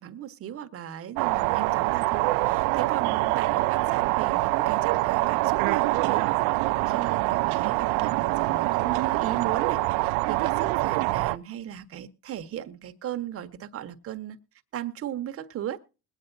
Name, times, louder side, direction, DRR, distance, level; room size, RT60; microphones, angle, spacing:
voice 1, 0.0-14.4 14.7-15.8, right 11 dB, 50° right, 1.3 m, -37 dB
sound 1, 1.2-11.4, right 20 dB, 90° right, 0.6 m, -25 dB
21.5 x 9.2 x 2.7 m
cardioid pair, 115°, 30 cm